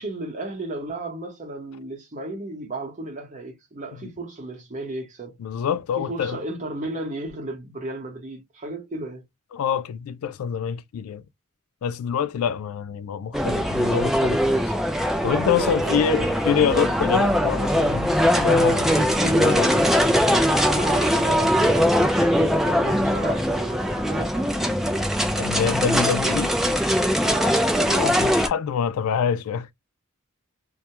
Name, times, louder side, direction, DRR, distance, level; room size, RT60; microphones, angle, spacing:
voice 1, 0.0-5.4 6.0-9.2 12.3-12.6 15.6-16.1 16.6-16.9 18.8-24.8 27.2-27.7, right 2 dB, 35° right, 0.9 m, -34 dB
voice 2, 5.4-6.4 9.5-11.2 11.8-14.6 15.2-18.9 19.4-19.7 25.4-26.5 27.9-29.7, left 8 dB, 85° left, 0.3 m, -26 dB
sound 1, 13.3-28.5, equal, ahead, 0.3 m, -21 dB
2.2 x 2.1 x 2.8 m
head